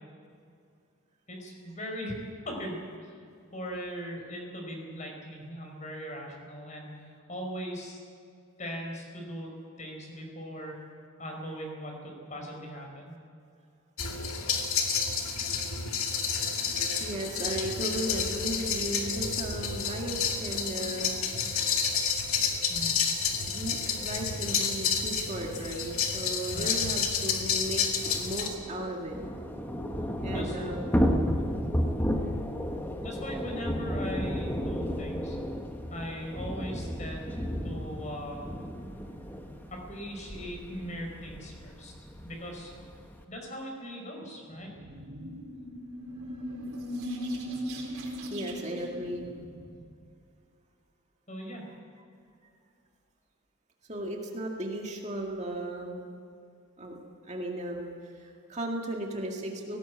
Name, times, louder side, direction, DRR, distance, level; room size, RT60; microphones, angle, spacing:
voice 1, 1.3-2.2 2.4-3.1 3.5-8.0 8.6-9.5 9.8-10.8 11.2-13.1 22.7-22.9 26.5-26.8 30.3-30.8 33.0-35.4 35.9-38.5 39.7-41.9 42.2-42.7 43.3-44.7 51.3-51.6, equal, 35° left, 1 dB, 4.8 m, -39 dB
sound 1, 14.0-28.5, left 6 dB, 85° left, 2.3 m, -30 dB
voice 2, 17.0-21.3 23.5-29.2 30.2-30.9 31.2-31.5 47.8-49.3 51.7-52.0 53.9-56.0 56.8-57.0 57.2-59.8, right 1 dB, 30° right, 0 dB, 2.1 m, -36 dB
Thunder / Rain, 27.4-43.2, equal, 10° left, 1.3 m, -33 dB
sound 2, 44.5-49.9, equal, 85° right, 4.0 m, -38 dB
18.0 x 17.5 x 8.4 m, 2.3 s
head